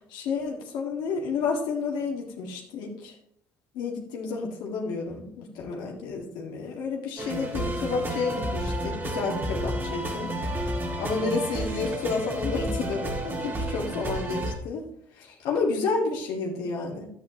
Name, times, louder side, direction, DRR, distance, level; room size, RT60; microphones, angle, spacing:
voice 1, 0.1-3.2 3.7-10.3 11.0-14.8 15.2-17.1, left 4 dB, 80° left, -1 dB, 1.8 m, -30 dB
sound 1, 7.2-14.5, right 1 dB, 25° right, 1.9 m, -31 dB
11.0 x 9.2 x 2.9 m, 0.72 s
supercardioid pair, 90°, 8 cm